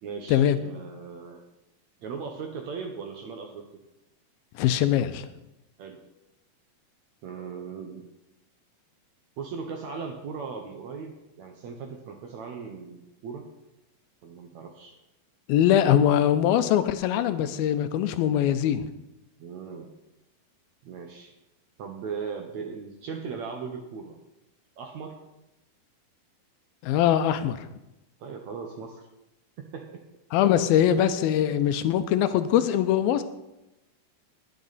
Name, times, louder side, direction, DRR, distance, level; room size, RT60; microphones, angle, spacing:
voice 1, 0.0-1.4 2.0-3.7 5.8-6.0 7.2-8.1 9.4-13.5 14.2-15.0 19.4-19.9 20.8-21.4 21.8-24.2 24.8-25.2 28.2-29.1 29.6-30.0, right 5 dB, 65° right, 4 dB, 1.9 m, -38 dB
voice 2, 4.6-5.3 15.5-18.9 26.8-27.7 30.3-33.2, left 10 dB, 85° left, 11 dB, 2.6 m, -22 dB
19.5 x 8.6 x 4.1 m, 0.93 s
omnidirectional pair, 4.2 m